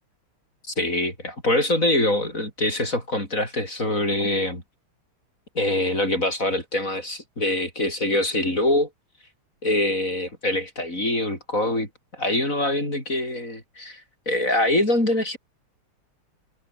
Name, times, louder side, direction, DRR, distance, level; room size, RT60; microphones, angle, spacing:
voice 1, 0.7-4.6 5.5-8.9 9.6-14.0 14.3-15.4, left 1 dB, 35° left, 8.2 m, -24 dB
omnidirectional pair, 2.4 m